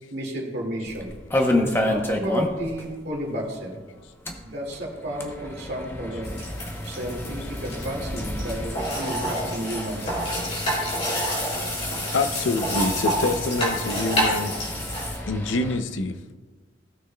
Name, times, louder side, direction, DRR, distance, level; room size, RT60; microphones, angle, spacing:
voice 1, 0.1-1.1 1.8-3.8 4.4-6.4 6.8-10.2, equal, 60° right, -1 dB, 2.1 m, -32 dB
sound 1, 0.9-2.8 3.1-3.2 3.5-3.6 4.1-15.8, left 1 dB, 10° left, 0.7 m, -31 dB
sound 2, 6.2-15.2, equal, 35° left, 2.8 m, -28 dB
voice 2, 12.1-14.5 15.3-16.1, left 3 dB, 85° left, 9 dB, 0.6 m, -26 dB
16.5 x 6.6 x 2.2 m, 1.3 s
head